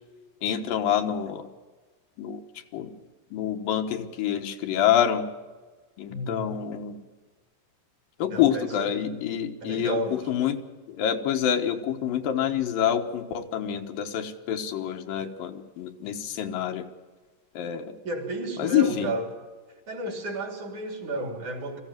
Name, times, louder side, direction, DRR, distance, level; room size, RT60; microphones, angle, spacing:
voice 1, 0.4-1.5 2.2-2.4 2.7-2.9 3.3-5.3 6.0-7.0 8.2-10.6 10.9-16.9 17.6-18.0 18.6-19.1, left 9 dB, 85° left, 5 dB, 3.1 m, -27 dB
voice 2, 6.1-6.5 8.3-8.9 9.6-10.3 18.0-19.3 19.9-21.8, right 1 dB, 55° right, 2 dB, 4.7 m, -32 dB
22.0 x 15.5 x 9.3 m, 1.4 s
omnidirectional pair, 4.0 m